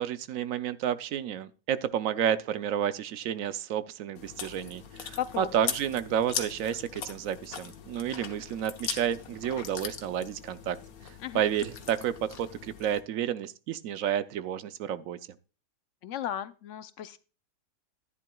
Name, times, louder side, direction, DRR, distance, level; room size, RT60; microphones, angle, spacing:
voice 1, 0.0-10.8 11.0-15.2, right 9 dB, 75° right, 1.0 m, -31 dB
Chewing mastication, 4.1-13.0, left 7 dB, 90° left, 1.5 m, -40 dB
voice 2, 5.2-5.7 11.2-11.4 16.0-17.2, left 10 dB, 65° left, 0.8 m, -35 dB
10.5 x 10.5 x 2.3 m
omnidirectional pair, 1.5 m